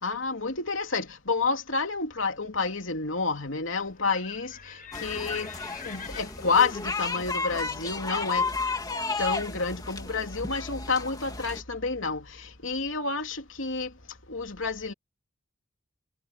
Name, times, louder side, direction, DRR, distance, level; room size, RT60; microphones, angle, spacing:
voice 1, 0.0-4.5 5.0-5.5 5.9-8.4 9.2-12.2 12.6-13.9 14.3-14.9, left 4 dB, 75° left, 3.1 m, -29 dB
Livestock farm animals working animals, 3.9-9.7, left 8 dB, 45° left, 4.9 m, -47 dB
sound 1, 4.9-11.6, left 4 dB, 20° left, 2.7 m, -33 dB
head